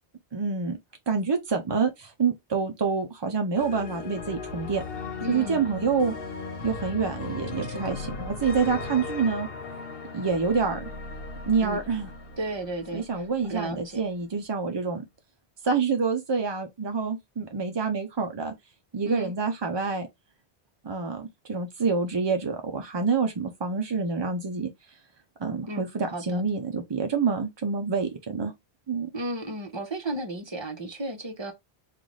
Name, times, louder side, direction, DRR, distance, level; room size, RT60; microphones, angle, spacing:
voice 1, 0.3-0.8 1.1-4.8 5.3-6.1 6.6-9.5 10.1-10.8 11.5-12.1 12.9-15.0 15.6-18.5 18.9-20.1 20.8-24.7 25.4-28.5 28.9-29.1, right 5 dB, 45° right, 0.3 m, -27 dB
sound 1, 3.6-13.6, left 4 dB, 65° left, 1.1 m, -37 dB
voice 2, 5.2-5.6 7.7-8.0 11.6-11.8 12.4-14.0 19.0-19.3 25.7-26.4 29.1-31.5, right 1 dB, 30° right, 0.8 m, -34 dB
3.8 x 2.5 x 3.1 m
omnidirectional pair, 1.1 m